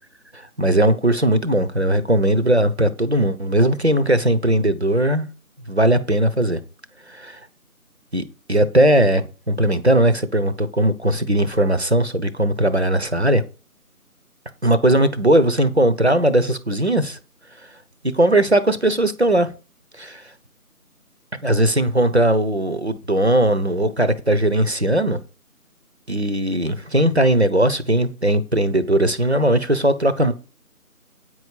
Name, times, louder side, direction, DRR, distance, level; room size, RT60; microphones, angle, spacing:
voice 1, 0.3-5.3 5.7-6.6 7.1-7.4 8.1-13.4 14.6-17.2 18.1-19.5 20.0-20.2 21.4-25.2 26.1-30.3, right 1 dB, 45° right, 0.9 m, -18 dB
9.1 x 4.8 x 7.2 m
figure-of-eight pair, 170°, 45 cm